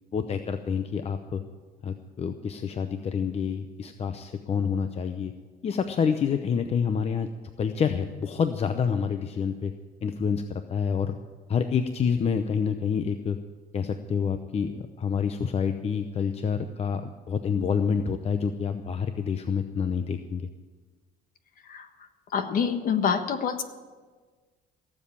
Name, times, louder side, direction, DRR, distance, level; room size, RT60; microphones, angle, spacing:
voice 1, 0.1-1.4 1.8-5.3 5.6-7.3 7.6-9.7 10.0-11.2 11.5-13.4 13.7-17.0 17.3-20.5, left 6 dB, 40° left, 8 dB, 0.7 m, -28 dB
voice 2, 22.3-23.6, left 7 dB, 55° left, 8 dB, 1.4 m, -26 dB
17.0 x 7.5 x 8.7 m, 1.4 s
cardioid pair, 110°, 17 cm